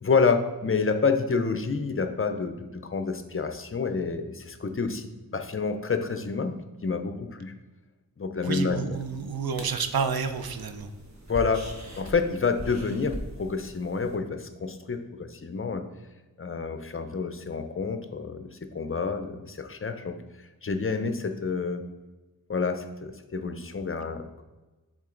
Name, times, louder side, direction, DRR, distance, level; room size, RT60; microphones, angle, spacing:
voice 1, 0.0-6.5 6.8-7.5 8.2-8.8 11.3-11.7 12.0-15.8 16.4-18.5 18.7-20.2 20.6-21.8 22.5-24.4, left 4 dB, 35° left, 7 dB, 0.6 m, -28 dB
voice 2, 8.4-10.9, right 6 dB, 75° right, 8 dB, 0.6 m, -29 dB
sound 1, 8.9-14.2, right 1 dB, 50° right, 1.1 m, -41 dB
7.3 x 3.8 x 3.8 m, 1.2 s
wide cardioid pair, 75°, 37 cm